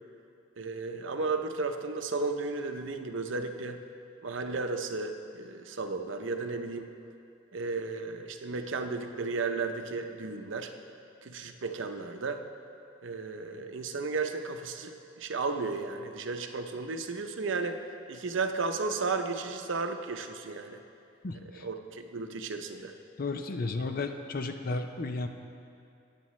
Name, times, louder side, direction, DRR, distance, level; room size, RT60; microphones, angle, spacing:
voice 1, 0.6-3.8 4.2-6.9 7.5-10.7 11.2-12.4 13.0-17.8 18.1-20.8 21.5-22.9, right 4 dB, 70° right, 6 dB, 0.7 m, -34 dB
voice 2, 21.2-21.7 23.2-25.3, left 3 dB, 45° left, 6 dB, 0.6 m, -33 dB
17.0 x 9.0 x 3.2 m, 2.6 s
head